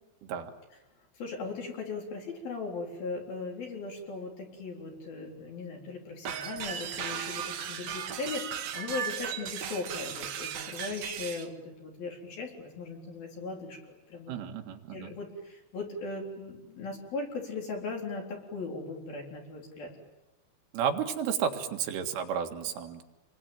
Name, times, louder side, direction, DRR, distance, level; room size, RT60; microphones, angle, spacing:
voice 1, 1.2-13.8 14.1-14.3 14.9-19.9, left 3 dB, 50° left, 0 dB, 5.6 m, -38 dB
sound 1, 6.3-11.5, right 8 dB, 65° right, 2.0 m, -36 dB
voice 2, 14.3-15.1 20.7-23.0, right 8 dB, 80° right, 4 dB, 4.2 m, -32 dB
28.5 x 22.5 x 9.1 m, 0.99 s
omnidirectional pair, 5.6 m